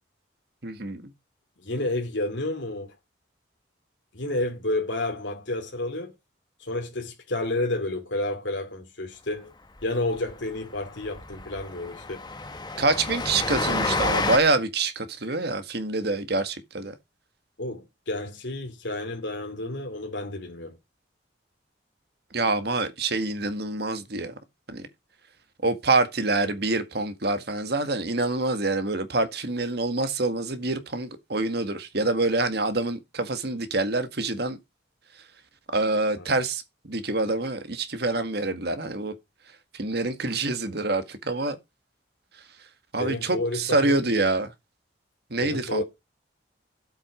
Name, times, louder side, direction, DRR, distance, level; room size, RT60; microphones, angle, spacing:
voice 1, 0.6-1.1 12.8-16.9 22.3-24.3 24.7-24.9 25.6-34.6 35.7-39.1 39.7-41.6 42.9-44.5 45.3-45.8, right 2 dB, 55° right, 1.8 m, -26 dB
voice 2, 1.6-2.9 4.1-6.1 6.6-9.5 9.8-12.2 17.6-20.8 36.2-36.3 43.0-44.0 45.4-45.8, left 2 dB, 70° left, 2.6 m, -30 dB
Train, 9.8-9.9 10.2-10.3 10.6-10.7 11.0-14.4, left 3 dB, 20° left, 1.3 m, -29 dB
11.5 x 8.1 x 5.0 m
head